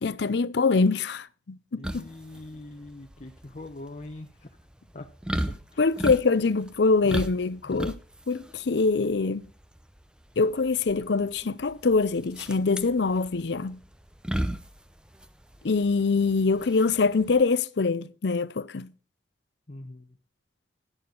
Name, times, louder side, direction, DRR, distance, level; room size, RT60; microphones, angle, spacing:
voice 1, 0.0-2.1 5.8-8.0 8.3-9.5 10.4-13.8 15.6-18.9, left 4 dB, 70° left, 0.6 m, -24 dB
voice 2, 1.8-4.5 4.9-5.1 5.7-5.8 19.7-20.1, left 2 dB, 40° left, 0.9 m, -42 dB
sound 1, 1.8-17.4, right 1 dB, 5° right, 0.7 m, -36 dB
11.5 x 11.0 x 3.9 m
head